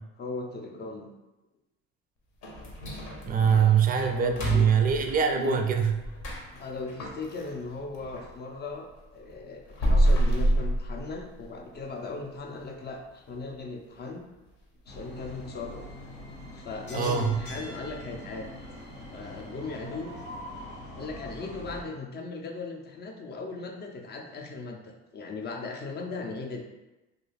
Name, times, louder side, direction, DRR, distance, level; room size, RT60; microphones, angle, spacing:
voice 1, 0.2-1.1 3.5-4.7 5.3-5.6 6.5-14.3 14.9-15.8 16.5-18.5 19.1-20.1 21.0-26.6, left 3 dB, 30° left, 3 dB, 0.5 m, -38 dB
sound 1, 2.4-8.4 8.7-11.6 11.9-12.0 12.5-12.6 13.2-13.5 13.8-13.9 14.4-14.5, right 1 dB, 60° left, 0.8 m, -29 dB
voice 2, 3.2-5.9 16.9-17.4, right 7 dB, 30° right, 5 dB, 0.4 m, -23 dB
sound 2, 14.9-21.8, left 1 dB, 90° left, 1.2 m, -42 dB
2.4 x 2.3 x 3.1 m, 1.0 s
supercardioid pair, 80°, 32 cm